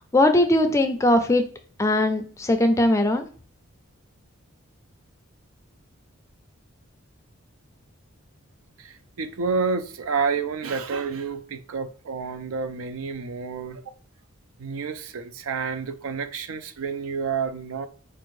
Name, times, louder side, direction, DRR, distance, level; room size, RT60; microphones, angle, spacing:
voice 1, 0.1-1.4 1.8-3.3, left 1 dB, 15° left, 0.3 m, -20 dB
voice 2, 8.8-13.8 14.6-17.9, right 5 dB, 75° right, 0.4 m, -29 dB
4.3 x 2.5 x 3.1 m
head